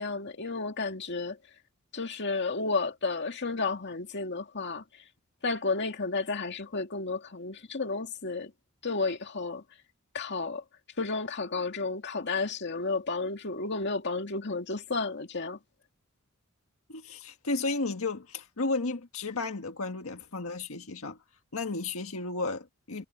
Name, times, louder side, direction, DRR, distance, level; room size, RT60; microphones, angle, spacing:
voice 1, 0.0-1.4 1.9-4.8 5.4-8.5 8.8-9.6 10.1-10.6 11.0-15.6, left 3 dB, 55° left, 2.2 m, -32 dB
voice 2, 16.9-21.2 21.5-23.0, left 3 dB, 85° left, 1.7 m, -33 dB
head